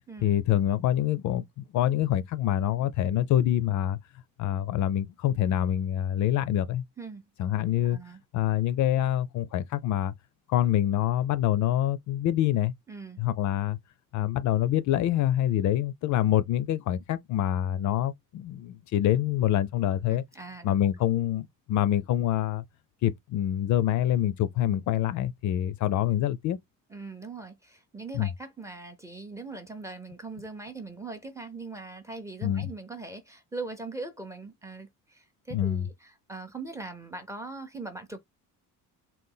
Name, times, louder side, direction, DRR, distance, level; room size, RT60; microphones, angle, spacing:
voice 1, 0.2-4.0 4.4-6.8 7.4-8.0 8.3-10.1 10.5-12.7 13.2-13.8 14.1-20.2 20.6-22.6 23.0-26.6 28.1-28.3 32.4-32.7 35.5-35.9, left 12 dB, 55° left, 0.4 m, -26 dB
voice 2, 7.0-7.3 7.8-8.2 12.9-13.2 20.1-20.9 26.9-38.2, right 3 dB, 10° right, 0.5 m, -41 dB
3.9 x 2.2 x 3.8 m
cardioid pair, 180°, 35 cm